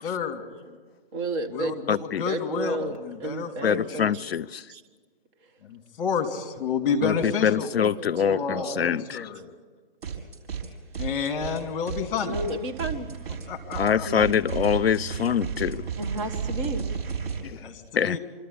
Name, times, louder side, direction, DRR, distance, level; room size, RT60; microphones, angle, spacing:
voice 1, 0.0-0.5 1.5-4.1 5.6-7.7 8.3-9.5 11.0-12.4 13.5-14.1 17.5-18.2, left 6 dB, 35° left, 4 dB, 2.7 m, -30 dB
voice 2, 1.1-1.8 2.2-4.2 4.7-4.8 5.4-5.5 7.1-7.7 8.0-9.0 12.2-13.1 13.9-14.3 16.0-16.9, right 2 dB, 30° right, 6 dB, 1.4 m, -33 dB
voice 3, 1.9-2.2 3.6-4.6 7.0-9.2 13.8-15.8 17.4-17.6 18.0-18.2, left 8 dB, 85° left, 20 dB, 0.5 m, -24 dB
sound 1, 10.0-10.7 10.9-17.4, right 6 dB, 60° right, 4.9 m, -33 dB
26.5 x 13.0 x 8.4 m, 1.5 s
figure-of-eight pair, 130°, 30 cm